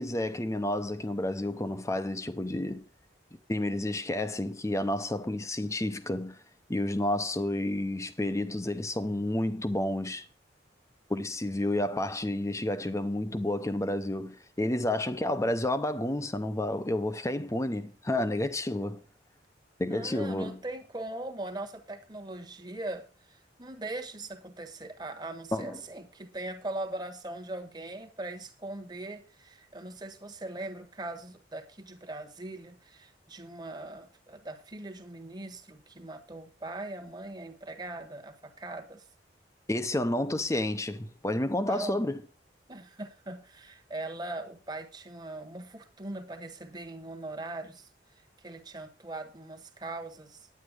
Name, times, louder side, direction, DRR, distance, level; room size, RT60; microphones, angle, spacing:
voice 1, 0.0-2.8 3.5-6.4 6.7-10.2 11.1-19.0 19.8-20.6 25.5-25.8 39.7-42.2, left 1 dB, 15° left, 0.7 m, -30 dB
voice 2, 19.9-39.0 41.7-42.0 42.7-47.9 48.4-50.5, right 2 dB, 25° right, 1.3 m, -40 dB
9.7 x 9.5 x 5.0 m
head